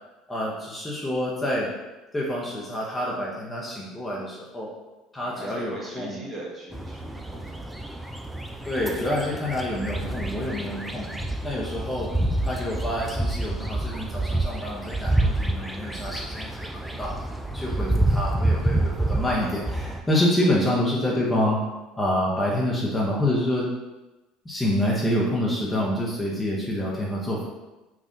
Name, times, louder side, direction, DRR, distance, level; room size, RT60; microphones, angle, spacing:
voice 1, 0.3-1.7 2.1-4.7 5.1-6.2 8.7-11.1 11.4-12.1 12.4-17.2 17.5-21.6 21.9-23.7 24.4-27.5, left 1 dB, 15° left, -4 dB, 0.7 m, -27 dB
voice 2, 5.2-7.6, right 2 dB, 25° right, -4 dB, 1.1 m, -39 dB
sound 1, 6.7-20.0, right 1 dB, 10° right, 0.3 m, -28 dB
3.5 x 2.3 x 2.6 m, 1.1 s
hypercardioid pair, 70°, 0 cm